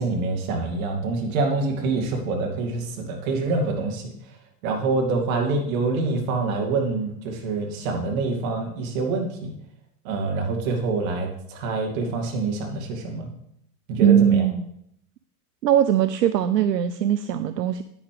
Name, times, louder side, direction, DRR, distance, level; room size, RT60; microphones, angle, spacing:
voice 1, 0.0-4.0 4.6-9.5 10.0-13.3 13.9-14.4, right 3 dB, 55° right, 2 dB, 2.6 m, -26 dB
voice 2, 14.0-14.7 15.6-17.8, right 10 dB, 85° right, 11 dB, 0.6 m, -20 dB
9.8 x 9.0 x 3.4 m, 0.72 s
hypercardioid pair, 95°, 48 cm